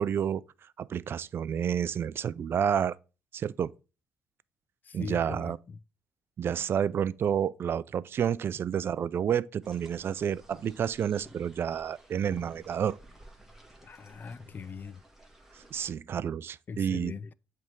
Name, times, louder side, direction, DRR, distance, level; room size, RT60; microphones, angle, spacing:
voice 1, 0.0-3.0 3.3-3.7 4.9-5.6 6.4-13.0 15.5-17.1, right 8 dB, 50° right, 0.4 m, -30 dB
voice 2, 4.8-5.8 13.8-15.0 16.7-17.3, left 5 dB, 40° left, 0.4 m, -41 dB
sound 1, 9.6-15.9, right 1 dB, 10° right, 1.7 m, -54 dB
7.8 x 3.4 x 5.2 m
supercardioid pair, 55°, 5 cm